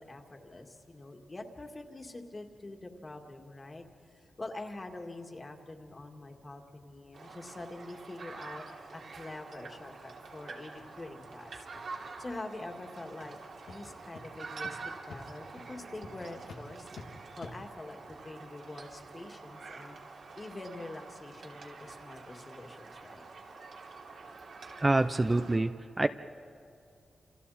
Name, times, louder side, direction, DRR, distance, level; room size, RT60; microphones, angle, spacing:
voice 1, 0.0-8.7 8.9-11.7 12.2-13.4 13.7-14.8 15.1-16.9 17.4-18.0 18.2-20.0 20.3-23.2, left 2 dB, 30° left, 3 dB, 2.1 m, -45 dB
sound 1, 7.1-25.6, right 4 dB, 75° right, 3.0 m, -47 dB
sound 2, 7.2-7.3 7.8-7.9 8.3-8.4 8.7-8.8 9.2-9.3 9.7-9.9 10.2-10.3 10.7-10.8 11.2-11.4 11.7-12.1 12.6-12.8 13.2-13.3 13.7-13.8 14.1-14.2 14.6-14.7 15.1-15.2 15.6-15.7 16.0-16.1 16.5-16.6 16.9-17.1 17.4-17.6, left 4 dB, 85° left, 1.8 m, -50 dB
voice 2, 24.8-26.1, right 2 dB, 20° right, 9 dB, 0.5 m, -26 dB
30.0 x 28.0 x 4.3 m, 2.4 s
cardioid pair, 95°, 0 cm